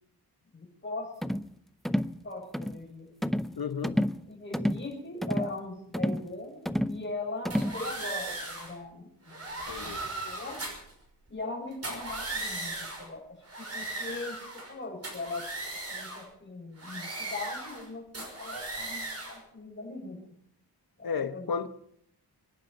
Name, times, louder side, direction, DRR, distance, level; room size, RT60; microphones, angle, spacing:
voice 1, 0.5-1.3 2.2-3.1 4.3-10.6 11.3-14.4 14.7-15.5 15.9-20.3 21.0-21.7, left 2 dB, 30° left, 6.2 m, -40 dB
sound 1, 1.2-1.5 1.8-2.2 2.5-2.8 3.2-3.6 3.8-4.2 4.5-4.9 5.2-5.5 5.9-6.3 6.7-7.0 7.4-7.8, equal, ahead, 0.5 m, -29 dB
voice 2, 3.6-4.0 9.7-10.0 21.0-21.7, left 6 dB, 65° left, 1.2 m, -33 dB
sound 2, 7.5-8.7 9.3-10.9 11.7-13.1 13.4-14.7 15.0-16.3 16.8-17.9 18.1-19.4, right 2 dB, 40° right, 5.6 m, -37 dB
24.0 x 11.0 x 5.5 m
wide cardioid pair, 135°, 38 cm